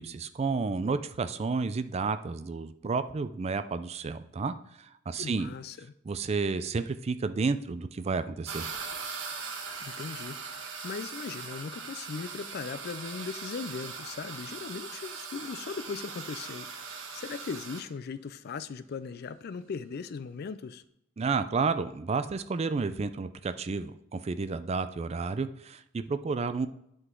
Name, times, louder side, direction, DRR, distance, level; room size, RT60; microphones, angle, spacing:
voice 1, 0.0-5.5 6.0-8.7 21.2-26.7, right 4 dB, 35° right, 11 dB, 0.4 m, -31 dB
voice 2, 5.1-5.9 9.8-20.8, left 5 dB, 55° left, 14 dB, 0.4 m, -39 dB
sound 1, 8.5-17.8, right 5 dB, 75° right, 1.1 m, -40 dB
10.5 x 3.9 x 3.7 m, 0.77 s
head